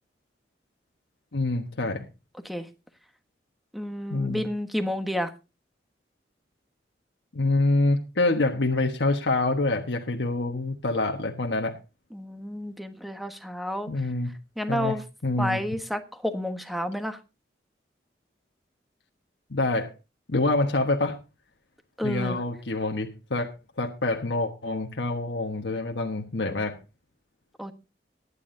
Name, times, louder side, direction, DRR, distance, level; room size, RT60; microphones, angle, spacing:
voice 1, 1.3-2.0 4.1-4.4 7.3-11.8 13.9-14.3 14.7-14.9 15.2-15.6 19.5-19.9 20.3-21.2 22.0-26.8, left 2 dB, 90° left, 1.3 m, -26 dB
voice 2, 3.7-5.3 12.1-13.9 14.6-15.0 15.4-17.2 22.0-22.4 27.6-27.7, equal, ahead, 1.2 m, -30 dB
21.5 x 9.7 x 2.7 m
head